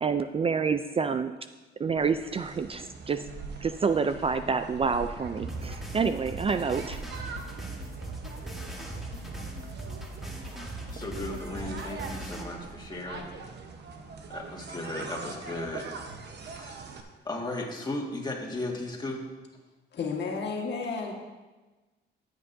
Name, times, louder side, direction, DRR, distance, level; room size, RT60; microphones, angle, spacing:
voice 1, 0.0-1.3 1.8-3.3 3.6-7.0, right 5 dB, 30° right, 10 dB, 0.4 m, -28 dB
sound 1, 2.0-17.0, right 4 dB, 60° right, 1.0 m, -42 dB
sound 2, 5.5-12.4, right 1 dB, ahead, 1.6 m, -39 dB
voice 2, 10.9-13.3 14.3-15.9 16.4-16.8 17.2-19.2, left 2 dB, 20° left, -1 dB, 1.8 m, -36 dB
voice 3, 19.9-21.1, left 4 dB, 60° left, 0 dB, 1.7 m, -32 dB
13.5 x 8.0 x 2.7 m, 1.2 s
cardioid pair, 90°, 20 cm